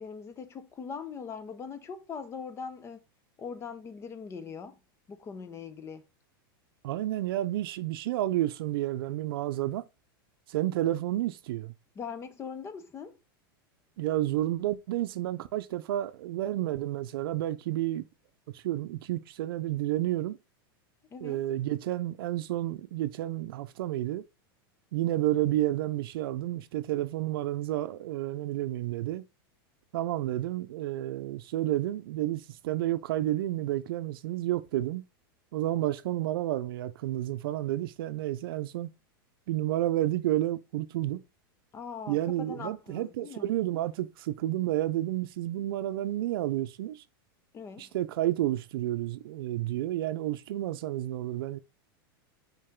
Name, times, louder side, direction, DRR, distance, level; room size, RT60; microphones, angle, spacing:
voice 1, 0.0-3.0 3.4-4.8 5.1-6.0 12.0-13.2 21.1-21.4 41.7-43.5 47.5-47.9, left 6 dB, 20° left, 0.7 m, -41 dB
voice 2, 6.8-9.9 10.5-11.7 14.0-18.0 18.5-20.4 21.2-24.2 24.9-29.3 29.9-35.0 35.5-38.9 39.5-41.2 42.1-47.0 47.8-51.6, right 14 dB, 70° right, 0.6 m, -30 dB
5.5 x 4.7 x 3.6 m
supercardioid pair, 135°, 12 cm